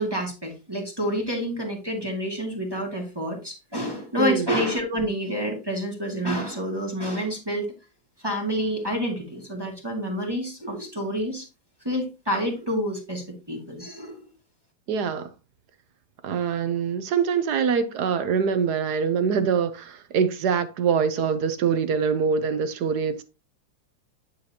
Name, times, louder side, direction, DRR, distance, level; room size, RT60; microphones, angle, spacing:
voice 1, 0.0-7.7 8.2-11.5 11.8-14.2, equal, 10° right, 2.0 m, -28 dB
voice 2, 4.2-4.5 14.9-15.3 16.2-23.2, right 6 dB, 65° right, 1.2 m, -24 dB
9.8 x 6.7 x 2.9 m
omnidirectional pair, 2.2 m